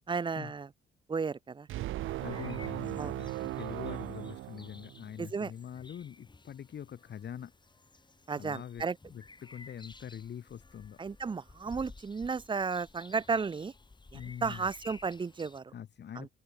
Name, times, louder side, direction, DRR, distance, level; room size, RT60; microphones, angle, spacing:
voice 1, 0.1-0.7 1.1-1.7 3.0-3.2 5.2-5.5 8.3-9.0 11.0-13.7 14.1-15.7 16.2-16.3, right 5 dB, 25° right, 0.6 m, -34 dB
sound 1, 1.7-5.2, right 15 dB, 85° right, 1.4 m, -37 dB
sound 2, 2.0-15.6, left 3 dB, 20° left, 6.0 m, -55 dB
voice 2, 2.2-7.5 8.3-8.9 9.1-11.0 11.7-11.8 14.1-14.7 15.7-16.3, left 9 dB, 60° left, 5.6 m, -44 dB
cardioid pair, 90°, 20 cm